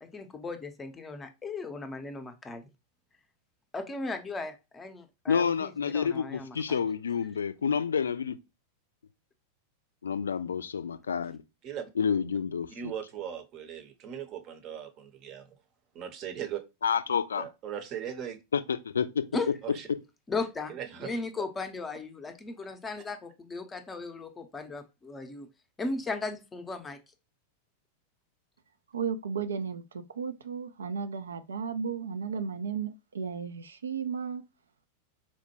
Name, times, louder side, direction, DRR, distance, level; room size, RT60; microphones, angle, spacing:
voice 1, 0.0-2.6 3.7-6.8 19.3-19.5 20.3-20.7 21.0-25.5 25.8-27.0, left 3 dB, 15° left, 0.6 m, -36 dB
voice 2, 5.3-8.4 10.0-11.4 12.0-12.9 16.8-17.5 18.5-19.3, left 6 dB, 70° left, 0.3 m, -29 dB
voice 3, 12.7-15.6 15.9-16.6 17.4-18.4 19.6-19.9 20.7-21.4, right 9 dB, 35° right, 0.7 m, -39 dB
voice 4, 28.9-29.8 30.2-34.4, right 6 dB, 70° right, 0.3 m, -34 dB
4.3 x 2.1 x 2.9 m
figure-of-eight pair, 90°, 0 cm